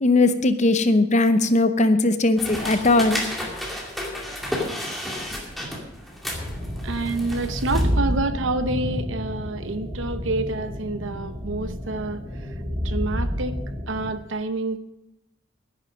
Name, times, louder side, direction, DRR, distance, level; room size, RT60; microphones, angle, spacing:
voice 1, 0.0-3.2, left 2 dB, 35° left, 10 dB, 0.8 m, -19 dB
sound 1, 2.4-7.8, left 1 dB, ahead, 2.2 m, -32 dB
sound 2, 6.3-14.1, equal, 20° right, 3.0 m, -29 dB
voice 2, 6.8-12.2 12.8-13.6 13.9-14.8, right 2 dB, 65° right, 11 dB, 0.8 m, -28 dB
10.5 x 10.5 x 6.3 m, 0.86 s
head